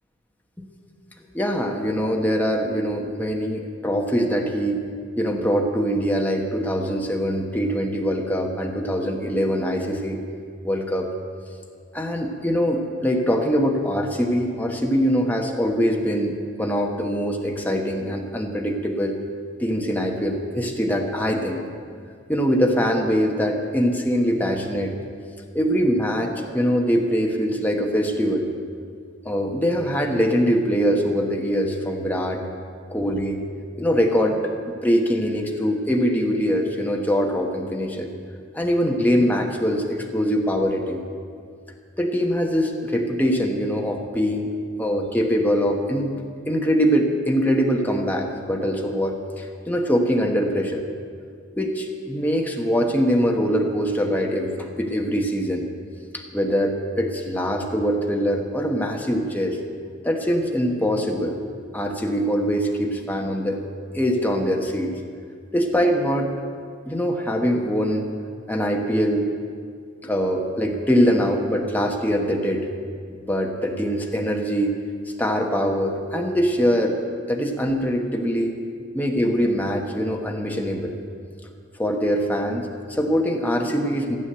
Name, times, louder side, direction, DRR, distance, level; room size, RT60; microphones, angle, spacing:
voice 1, 1.3-4.8 5.2-10.2 10.6-11.1 11.9-16.3 16.6-19.2 19.6-21.6 22.3-24.9 25.5-28.5 29.2-32.4 32.9-33.4 33.8-38.1 38.5-41.0 42.0-44.5 44.8-46.1 46.5-50.8 51.6-55.7 56.1-59.6 60.0-61.4 61.7-63.6 63.9-65.0 65.5-66.3 66.8-68.1 68.5-69.3 70.0-72.7 73.2-74.7 75.2-77.0 77.3-78.6 78.9-81.0 81.8-84.2, equal, 10° left, 2 dB, 1.1 m, -23 dB
14.5 x 8.5 x 7.9 m, 2.2 s
head